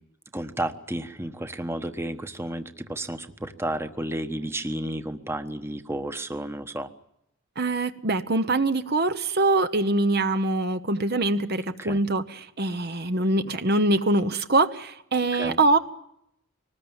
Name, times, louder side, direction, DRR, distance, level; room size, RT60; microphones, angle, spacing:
voice 1, 0.3-6.9 11.8-12.0 15.3-15.6, right 1 dB, 10° right, 9 dB, 1.2 m, -32 dB
voice 2, 7.6-15.8, right 2 dB, 45° right, 10 dB, 1.0 m, -23 dB
24.5 x 19.5 x 8.9 m, 0.78 s
head